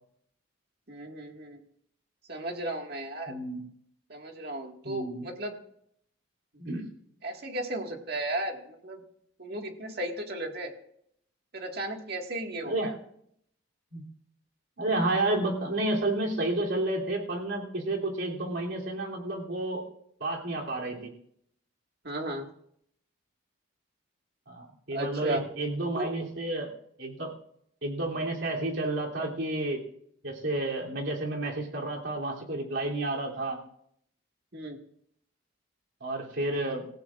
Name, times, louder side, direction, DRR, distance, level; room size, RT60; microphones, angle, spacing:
voice 1, 0.9-1.6 2.3-3.4 4.1-5.6 7.2-9.0 9.4-10.7 11.5-13.0 22.0-22.5 24.9-25.4 25.9-26.1 34.5-34.8, right 1 dB, 50° right, 2 dB, 1.9 m, -35 dB
voice 2, 3.3-3.6 4.8-5.2 6.6-6.8 12.6-12.9 13.9-14.0 14.8-19.8 20.2-21.1 24.5-26.7 27.0-27.3 27.8-29.8 30.2-33.6 36.0-36.8, right 2 dB, 70° right, -2 dB, 3.2 m, -31 dB
26.5 x 15.5 x 2.5 m, 0.71 s
head